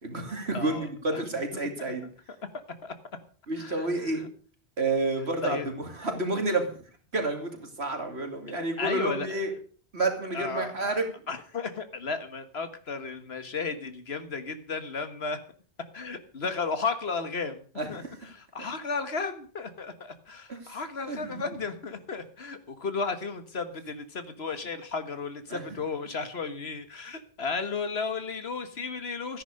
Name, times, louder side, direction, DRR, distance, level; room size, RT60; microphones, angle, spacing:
voice 1, 0.0-2.1 3.5-4.2 4.8-5.6 6.0-6.7 7.1-9.5 9.9-11.0 17.8-18.1 20.5-20.6 21.1-21.4 25.5-25.6, right 2 dB, 80° right, 4 dB, 3.0 m, -29 dB
voice 2, 0.5-1.2 1.5-1.9 2.8-2.9 3.6-4.3 5.4-5.7 8.5-9.4 10.3-11.0 11.3-15.4 15.9-29.4, left 4 dB, 70° left, 10 dB, 1.7 m, -34 dB
13.5 x 10.5 x 6.5 m, 0.43 s
omnidirectional pair, 1.1 m